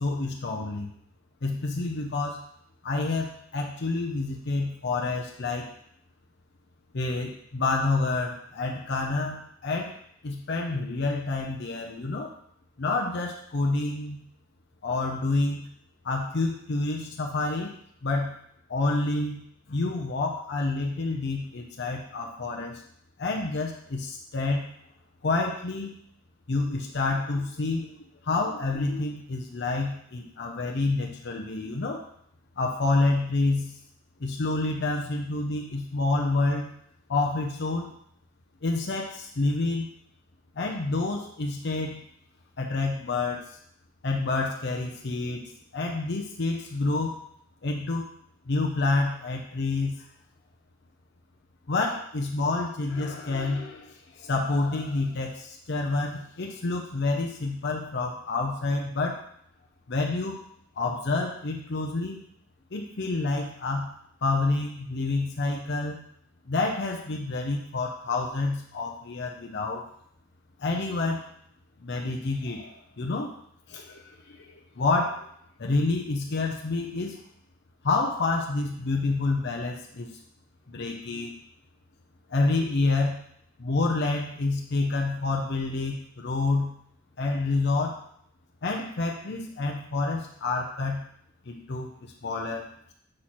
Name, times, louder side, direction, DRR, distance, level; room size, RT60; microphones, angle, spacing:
voice 1, 0.0-0.9 1.4-2.4 2.8-5.7 6.9-9.9 10.2-12.3 12.8-14.2 14.8-15.7 16.0-17.7 18.0-18.4 18.7-19.4 19.7-22.8 23.2-24.7 25.2-25.9 26.5-32.0 32.6-33.8 34.2-36.7 37.1-37.9 38.6-39.9 40.6-42.1 42.6-43.6 44.0-47.2 47.6-48.0 48.5-50.1 51.7-59.2 59.9-60.4 60.8-62.2 62.7-63.9 64.2-66.0 66.5-69.9 70.6-71.2 71.8-73.3 73.7-75.3 75.6-77.2 77.8-80.1 80.7-81.4 82.3-83.2 83.6-86.7 87.2-88.0 88.6-91.0 91.5-92.9, left 3 dB, 60° left, 1 dB, 0.7 m, -28 dB
6.3 x 4.4 x 4.4 m, 0.70 s
head